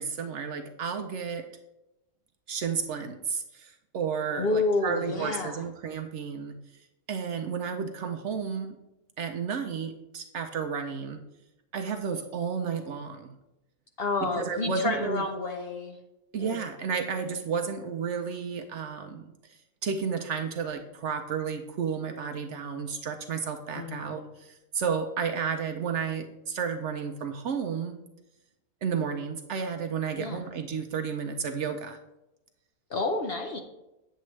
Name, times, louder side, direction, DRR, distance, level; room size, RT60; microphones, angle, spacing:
voice 1, 0.0-1.5 2.5-6.6 7.1-8.8 9.2-11.2 11.7-13.4 14.2-15.3 16.3-19.3 19.8-28.0 28.8-32.0, right 6 dB, 65° right, 6 dB, 0.8 m, -32 dB
voice 2, 4.4-5.6 14.0-16.0 16.4-16.6 23.7-24.3 30.2-30.4 32.9-33.6, left 3 dB, 55° left, 4 dB, 0.7 m, -30 dB
9.1 x 7.5 x 3.1 m, 0.94 s
omnidirectional pair, 1.5 m